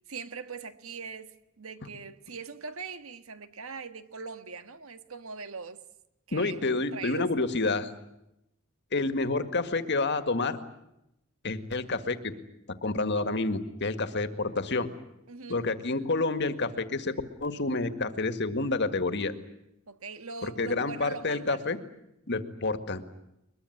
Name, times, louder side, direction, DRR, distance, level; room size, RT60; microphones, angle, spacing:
voice 1, 0.1-5.8 6.3-7.3 15.3-15.7 19.9-21.8, right 4 dB, 85° right, 1.6 m, -41 dB
voice 2, 6.3-7.9 8.9-10.6 11.4-12.3 12.8-14.9 15.5-19.3 20.4-21.8 22.3-23.0, left 3 dB, 55° left, 1.9 m, -29 dB
22.5 x 22.0 x 9.7 m
head